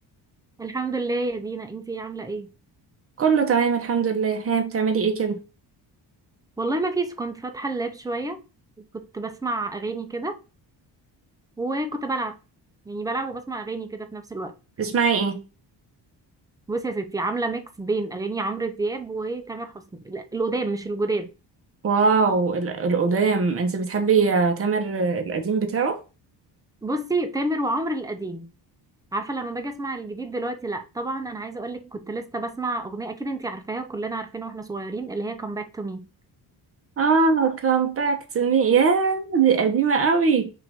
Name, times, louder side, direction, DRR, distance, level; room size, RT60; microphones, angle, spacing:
voice 1, 0.6-2.5 6.6-8.4 8.9-10.3 11.6-12.4 12.9-14.5 16.7-21.3 26.8-28.5 29.1-36.1, right 2 dB, 10° right, 0.5 m, -29 dB
voice 2, 3.2-5.4 14.8-15.4 21.8-26.0 37.0-40.5, right 5 dB, 35° right, 0.9 m, -21 dB
5.7 x 2.6 x 3.5 m
cardioid pair, 150°, 42 cm